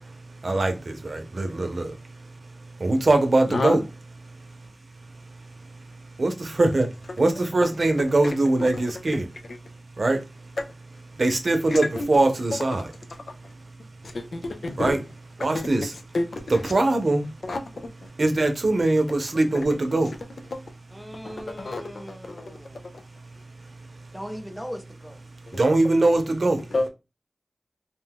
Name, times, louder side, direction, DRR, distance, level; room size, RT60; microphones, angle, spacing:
voice 1, 0.4-2.0 2.8-3.8 6.2-9.3 10.0-10.2 11.2-12.9 14.8-15.0 15.4-16.0 16.5-17.3 18.2-20.1 25.6-26.6, right 2 dB, 70° right, 0.6 m, -22 dB
voice 2, 11.7-12.1 14.1-15.0 15.5-15.7 16.1-16.6 17.4-17.6 21.2-21.8 26.7-26.9, left 2 dB, 90° left, 0.5 m, -28 dB
voice 3, 20.9-22.8 24.1-25.2, equal, ahead, 0.6 m, -39 dB
2.6 x 2.2 x 3.4 m
wide cardioid pair, 45°, 0 cm